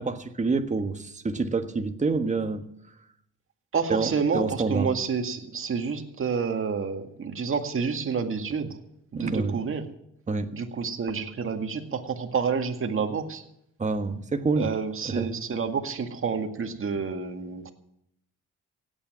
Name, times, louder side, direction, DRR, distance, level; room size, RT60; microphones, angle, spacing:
voice 1, 0.0-2.6 3.9-4.9 9.1-9.5 10.3-10.5 13.8-14.7 15.0-15.3, right 4 dB, 25° right, 6 dB, 1.5 m, -27 dB
voice 2, 3.7-8.8 9.1-9.9 10.5-13.4 14.6-17.7, right 5 dB, 45° right, 5 dB, 2.0 m, -29 dB
17.0 x 9.0 x 7.4 m, 0.75 s
cardioid pair, 90°, 30 cm